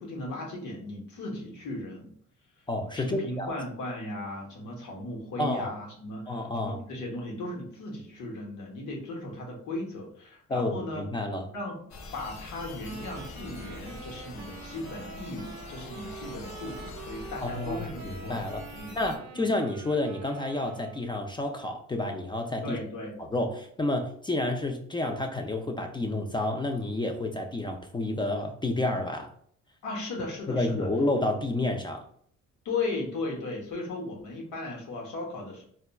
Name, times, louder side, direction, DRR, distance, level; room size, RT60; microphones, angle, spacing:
voice 1, 0.0-2.1 2.9-11.0 11.5-11.8 12.1-19.0 19.3-19.5 22.6-23.1 29.8-30.9 32.6-35.6, left 2 dB, 80° left, -1 dB, 1.0 m, -36 dB
voice 2, 2.7-3.5 5.4-5.7 6.3-6.8 10.5-11.5 17.4-18.6 18.9-22.8 23.2-29.3 30.5-32.0, left 2 dB, 15° left, 4 dB, 0.3 m, -30 dB
sound 1, 11.9-19.2, left 3 dB, 65° left, 0.6 m, -44 dB
sound 2, 12.8-21.2, right 6 dB, 60° right, 0.5 m, -46 dB
4.0 x 2.3 x 2.2 m, 0.62 s
cardioid pair, 90°, 30 cm